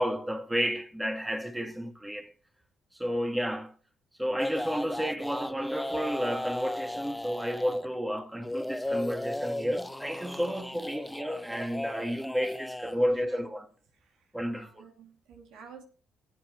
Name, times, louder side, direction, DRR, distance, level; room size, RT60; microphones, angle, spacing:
voice 1, 0.0-2.3 2.9-3.7 4.2-13.6 14.3-14.9, equal, 5° right, 1.8 m, -31 dB
sound 1, 4.4-7.9 8.4-12.9, left 1 dB, 10° left, 0.6 m, -36 dB
voice 2, 13.0-13.4 13.9-15.8, right 6 dB, 75° right, 2.7 m, -52 dB
20.0 x 8.1 x 3.2 m
hypercardioid pair, 55°, 0 cm